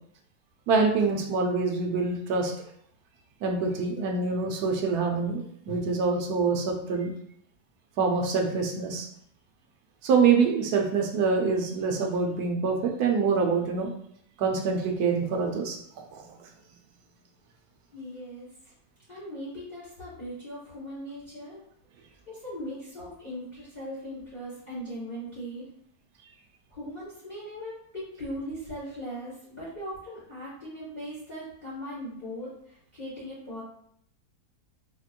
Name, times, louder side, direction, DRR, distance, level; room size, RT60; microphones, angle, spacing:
voice 1, 0.7-2.5 3.4-7.1 8.0-9.1 10.0-13.9 14.4-15.8 16.1-16.3, right 4 dB, 70° right, 2 dB, 1.1 m, -25 dB
voice 2, 17.9-18.7 19.1-21.6 22.3-25.7 26.7-33.6, equal, 30° left, -10 dB, 1.2 m, -39 dB
4.4 x 2.9 x 2.4 m, 0.67 s
omnidirectional pair, 1.9 m